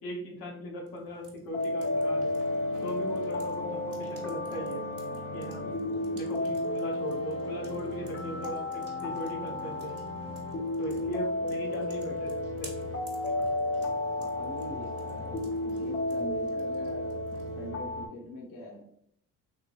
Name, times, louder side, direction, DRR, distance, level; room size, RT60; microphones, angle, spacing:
voice 1, 0.0-2.4 2.8-4.8 5.3-5.6 6.1-10.0 10.8-12.7, left 1 dB, 75° left, -1 dB, 1.2 m, -39 dB
sound 1, 0.9-17.7, right 2 dB, 40° right, 1.4 m, -52 dB
sound 2, 1.5-18.1, left 1 dB, 40° left, 1.0 m, -33 dB
voice 2, 5.6-6.4 14.1-18.9, left 1 dB, 60° left, -2 dB, 1.0 m, -43 dB
3.6 x 3.0 x 2.5 m, 0.66 s
supercardioid pair, 70°, 38 cm